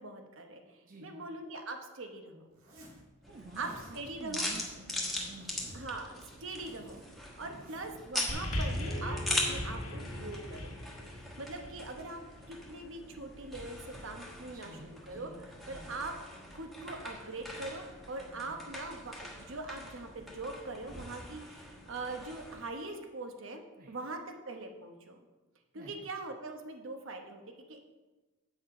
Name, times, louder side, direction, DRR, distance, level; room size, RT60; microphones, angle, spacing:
voice 1, 0.0-2.5 3.6-4.5 5.7-6.1 6.4-7.0 7.4-14.8 15.1-15.3 15.7-16.1 16.5-25.2 25.7-27.8, right 2 dB, 65° right, 4 dB, 1.0 m, -42 dB
voice 2, 0.8-1.2 3.3-3.7 4.2-5.5 7.4-7.7 14.5-15.4 15.7-15.9 18.3-18.5 23.8-23.9 25.7-26.1, right 2 dB, 40° right, 0 dB, 0.8 m, -50 dB
Zipper (clothing), 2.5-3.0 3.4-4.0 4.8-6.0 6.2-8.0, equal, 85° right, 2.2 m, -56 dB
sound 1, 3.2-22.7, left 1 dB, ahead, 1.2 m, -41 dB
sound 2, 8.3-12.8 13.7-13.8, left 1 dB, 75° left, 1.6 m, -38 dB
8.4 x 6.3 x 5.0 m, 1.2 s
head